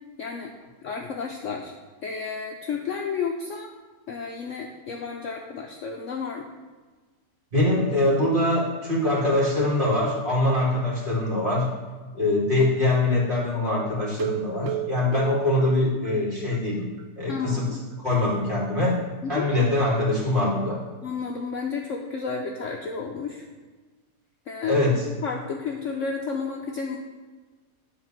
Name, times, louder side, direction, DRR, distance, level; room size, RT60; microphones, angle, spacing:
voice 1, 0.2-0.5 0.8-1.7 2.0-3.7 4.1-6.4 17.3-17.8 19.2-19.5 21.0-23.5 24.5-27.0, left 5 dB, 60° left, 1 dB, 0.9 m, -32 dB
voice 2, 7.5-11.7 12.1-16.9 17.2-17.6 18.0-19.0 19.3-20.8 24.7-25.0, left 2 dB, 30° right, -6 dB, 2.4 m, -23 dB
sound 1, 14.2-16.7 17.0-17.1 17.4-17.5 17.9-18.0, right 12 dB, 65° right, 0.9 m, -33 dB
10.0 x 4.0 x 5.9 m, 1.3 s
omnidirectional pair, 1.8 m